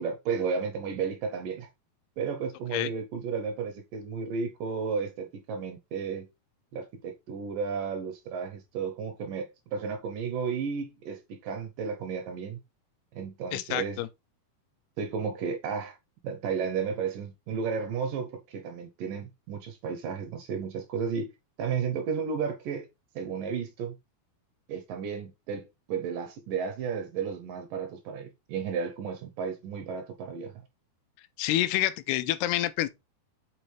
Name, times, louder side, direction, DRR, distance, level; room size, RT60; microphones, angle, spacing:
voice 1, 0.0-1.7 2.2-6.3 6.7-12.6 13.1-14.0 15.0-16.0 16.2-21.3 21.6-22.9 23.2-24.0 24.7-30.6, right 6 dB, 80° right, 2.1 m, -33 dB
voice 2, 13.5-14.1 31.4-32.9, left 14 dB, 90° left, 2.6 m, -28 dB
8.6 x 4.0 x 3.2 m
omnidirectional pair, 4.4 m